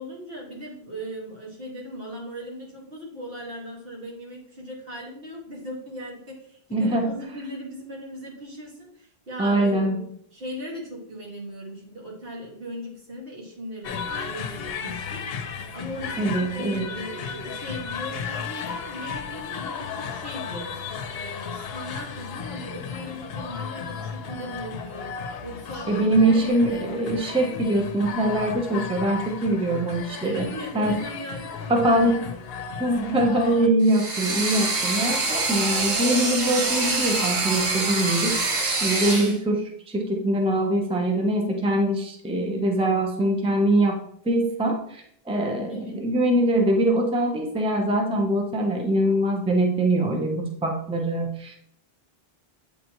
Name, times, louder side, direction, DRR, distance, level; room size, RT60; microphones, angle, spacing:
voice 1, 0.0-10.0 10.3-20.7 21.1-25.1 25.4-26.4 30.2-32.4 45.7-46.0, equal, 65° right, -4 dB, 2.0 m, -38 dB
voice 2, 6.7-7.1 9.4-10.0 16.2-16.9 25.9-30.5 30.7-31.0 31.7-32.3 32.8-44.0 44.2-51.5, right 1 dB, 5° right, 1 dB, 0.6 m, -23 dB
sound 1, 13.8-33.7, left 6 dB, 75° left, 0.8 m, -35 dB
sound 2, 33.8-39.4, right 3 dB, 50° right, 1.1 m, -25 dB
8.0 x 4.0 x 3.0 m, 0.68 s
omnidirectional pair, 1.0 m